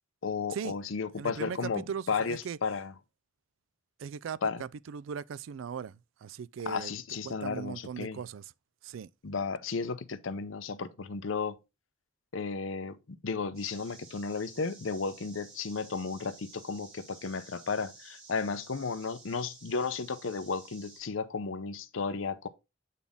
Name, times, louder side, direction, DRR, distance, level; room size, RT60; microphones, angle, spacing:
voice 1, 0.2-2.9 4.4-4.6 6.7-8.2 9.2-11.6 12.3-22.5, left 5 dB, 85° left, 0.7 m, -34 dB
voice 2, 1.2-2.6 4.0-6.9 7.2-8.5 8.8-9.1, right 7 dB, 85° right, 0.4 m, -39 dB
sound 1, 13.5-21.0, right 3 dB, 35° right, 4.6 m, -53 dB
8.3 x 4.1 x 3.5 m
head